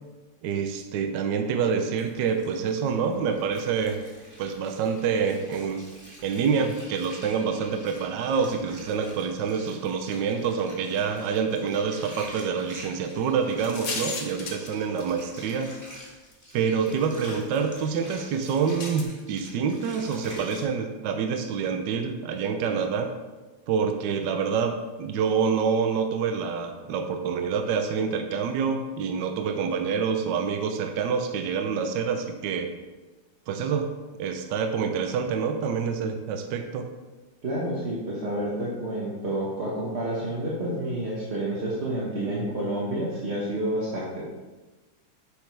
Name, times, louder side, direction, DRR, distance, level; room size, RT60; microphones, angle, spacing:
voice 1, 0.4-4.0 4.4-5.9 6.2-15.7 16.5-23.1 23.7-32.7 33.5-33.9 34.2-36.8, right 6 dB, 65° right, 5 dB, 1.2 m, -27 dB
Water, 2.0-20.6, equal, 10° right, 1.6 m, -47 dB
sound 1, 13.6-15.4 16.3-16.4 18.8-19.0, left 4 dB, 50° left, 1.2 m, -34 dB
voice 2, 37.4-44.2, right 1 dB, 35° right, -6 dB, 1.3 m, -29 dB
9.6 x 6.7 x 3.3 m, 1.2 s
omnidirectional pair, 2.4 m